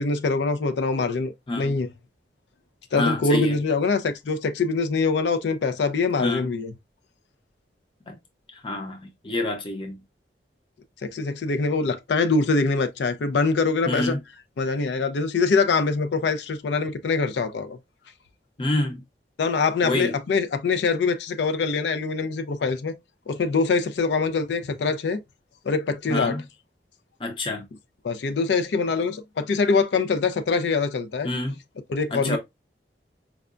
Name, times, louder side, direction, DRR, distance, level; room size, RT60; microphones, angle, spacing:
voice 1, 0.0-1.9 2.9-6.7 11.0-14.2 14.6-17.8 19.4-22.9 23.3-25.2 25.7-26.4 28.0-31.3 31.9-32.4, left 4 dB, 75° left, 0.4 m, -24 dB
voice 2, 3.0-3.6 6.2-6.5 8.1-8.2 8.5-10.0 13.9-14.2 18.6-19.0 19.8-20.2 26.1-26.4 27.2-27.7 31.2-31.6 32.1-32.4, left 2 dB, 30° left, 0.7 m, -27 dB
4.6 x 2.2 x 2.4 m
head